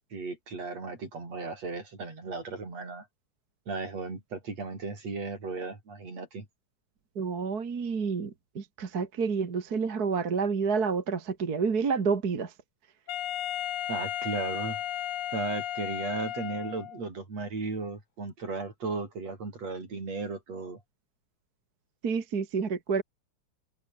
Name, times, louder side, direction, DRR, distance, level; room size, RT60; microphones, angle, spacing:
voice 1, 0.1-3.1 3.7-6.5 13.9-14.8 15.3-20.8, right 3 dB, 60° right, 7.3 m, -35 dB
voice 2, 7.2-12.5 22.0-23.0, right 5 dB, 35° right, 2.2 m, -29 dB
Wind instrument woodwind instrument, 13.1-17.0, left 12 dB, 60° left, 1.6 m, -34 dB
omnidirectional pair, 3.4 m